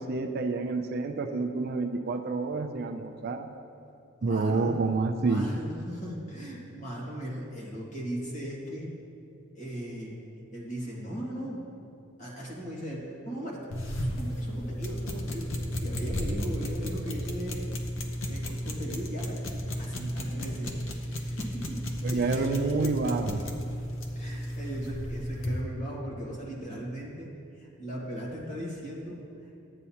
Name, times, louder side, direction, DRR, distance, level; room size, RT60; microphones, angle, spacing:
voice 1, 0.0-3.5 4.2-5.6 20.0-20.1 22.0-23.4, right 3 dB, 45° right, 6 dB, 0.4 m, -28 dB
voice 2, 4.2-4.8 5.2-8.9 9.5-10.2 10.5-11.6 12.2-13.7 14.0-15.5 15.8-17.7 18.3-21.8 22.1-22.9 24.2-27.3 27.5-29.2, equal, 35° left, -4 dB, 1.7 m, -38 dB
sound 1, 13.7-25.6, equal, 65° left, 0.8 m, -34 dB
12.0 x 8.2 x 2.9 m, 2.6 s
head